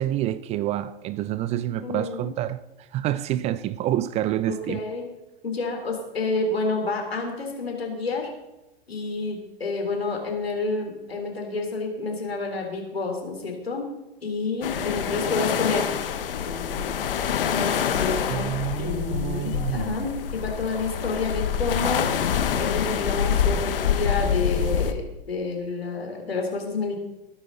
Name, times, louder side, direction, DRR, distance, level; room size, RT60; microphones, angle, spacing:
voice 1, 0.0-2.6 2.9-4.8 18.3-20.0, right 13 dB, 20° right, 0.4 m, -28 dB
voice 2, 1.8-2.3 4.5-5.1 5.4-8.3 8.9-13.9 14.2-15.9 16.3-16.8 17.4-22.3 22.6-27.0, left 3 dB, 80° left, 3.7 m, -29 dB
sound 1, 14.6-24.9, left 7 dB, 65° left, 1.3 m, -26 dB
20.5 x 9.9 x 4.0 m
figure-of-eight pair, 100°, 30 cm